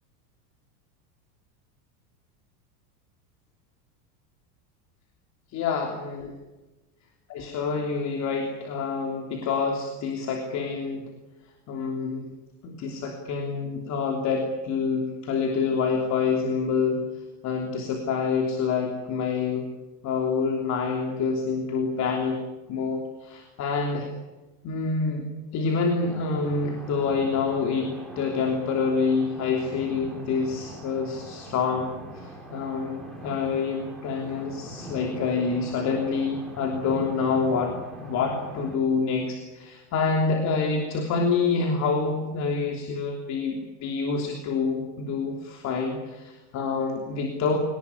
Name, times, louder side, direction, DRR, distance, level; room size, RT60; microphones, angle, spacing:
voice 1, 5.5-6.3 7.3-11.0 11.7-12.2 12.6-17.0 17.4-19.7 20.0-22.4 22.7-24.1 24.6-25.2 25.5-31.9 32.1-37.7 38.0-47.6, left 5 dB, 35° left, 2 dB, 3.3 m, -27 dB
sound 1, 26.0-38.8, right 1 dB, ahead, 5.4 m, -42 dB
24.5 x 19.0 x 9.9 m, 1.1 s
supercardioid pair, 160°, 49 cm